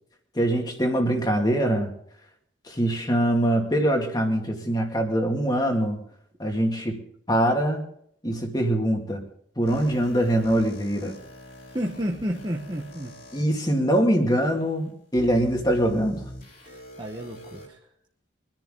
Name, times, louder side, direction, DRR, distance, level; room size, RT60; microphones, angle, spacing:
voice 1, 0.4-1.9 2.7-6.0 6.4-7.0 7.3-7.8 8.2-9.2 9.6-11.2 13.3-16.2, right 1 dB, 20° left, 2 dB, 2.2 m, -23 dB
sound 1, 9.7-13.4 14.2-14.3 15.1-17.7, left 1 dB, 55° left, 4.1 m, -43 dB
voice 2, 11.7-13.1 16.6-17.9, equal, 25° right, 0 dB, 1.1 m, -31 dB
24.0 x 10.5 x 3.8 m, 0.68 s
head